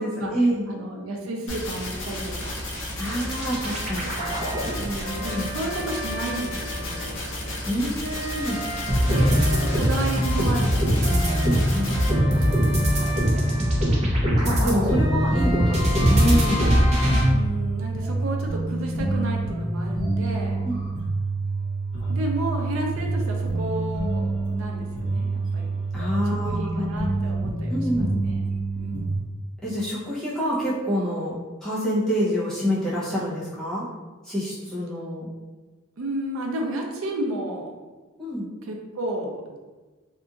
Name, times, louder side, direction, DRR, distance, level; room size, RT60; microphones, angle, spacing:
voice 1, 0.0-0.7 3.0-4.1 5.3-5.5 7.7-8.6 11.4-11.9 14.4-16.7 20.6-20.8 25.9-26.9 27.7-28.1 29.6-33.9 34.2-35.3 38.2-38.5, equal, 5° left, -9 dB, 0.7 m, -27 dB
voice 2, 0.7-2.5 4.8-7.2 9.1-11.2 12.1-13.4 17.3-20.6 22.1-25.7 26.4-28.5 28.8-29.2 36.0-37.7 38.6-39.6, right 1 dB, 80° right, 1 dB, 0.5 m, -32 dB
sound 1, 1.5-12.1, left 1 dB, 70° left, 0.7 m, -33 dB
sound 2, 3.2-7.3 7.7-17.2, equal, 35° right, 0.6 m, -22 dB
sound 3, 17.1-29.2, right 3 dB, 25° left, 1.0 m, -27 dB
2.8 x 2.5 x 2.4 m, 1.3 s
head